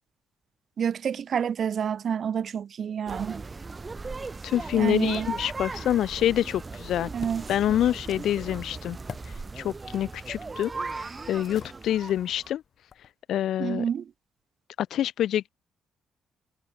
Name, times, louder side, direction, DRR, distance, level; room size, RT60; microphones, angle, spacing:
voice 1, 0.8-3.4 4.7-5.3 7.1-7.4 13.6-14.1, right 8 dB, 55° right, 1.7 m, -28 dB
sound 1, 3.1-12.5, right 3 dB, 25° right, 7.6 m, -38 dB
voice 2, 4.4-7.1 7.5-9.0 9.6-12.6 13.3-13.8 14.8-15.5, left 11 dB, 75° left, 0.5 m, -26 dB
Wood Dropping, 10.3-13.1, left 7 dB, 55° left, 3.2 m, -50 dB
cardioid pair, 90°, 0 cm